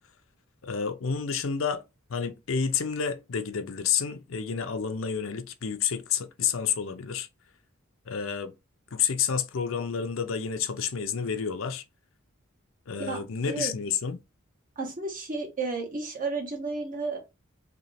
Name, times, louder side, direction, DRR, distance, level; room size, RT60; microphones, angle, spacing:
voice 1, 0.6-1.8 2.1-7.3 8.1-8.5 8.9-11.8 12.9-14.2, left 7 dB, 65° left, 0.5 m, -29 dB
voice 2, 14.8-17.2, right 3 dB, 40° right, 1.3 m, -32 dB
3.1 x 3.1 x 4.1 m
head